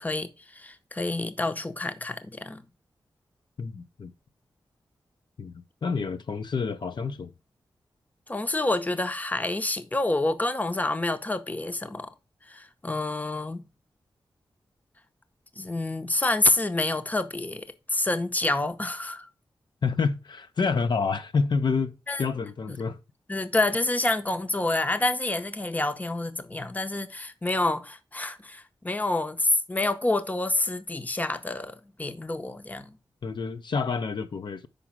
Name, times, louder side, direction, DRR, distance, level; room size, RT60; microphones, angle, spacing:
voice 1, 0.0-2.6 8.3-12.1 12.5-13.6 15.6-17.7 17.9-19.3 22.1-22.3 22.7-22.8 23.3-33.0, left 2 dB, 20° left, 0.7 m, -28 dB
voice 2, 3.6-4.1 5.4-7.3 19.8-23.0 33.2-34.7, left 4 dB, 60° left, 0.6 m, -28 dB
5.2 x 4.8 x 5.8 m
cardioid pair, 70°, 9 cm